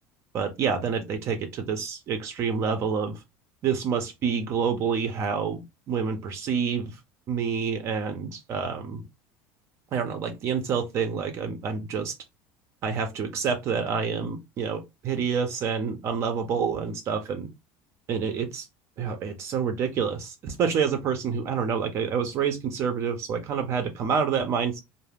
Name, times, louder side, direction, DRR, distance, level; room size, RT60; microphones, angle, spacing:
voice 1, 0.3-3.2 3.6-5.6 5.9-7.0 7.3-9.0 9.9-12.1 12.8-17.5 18.1-18.7 19.0-24.8, right 6 dB, 45° right, 0.5 m, -28 dB
2.3 x 2.1 x 3.3 m
supercardioid pair, 125°, 7 cm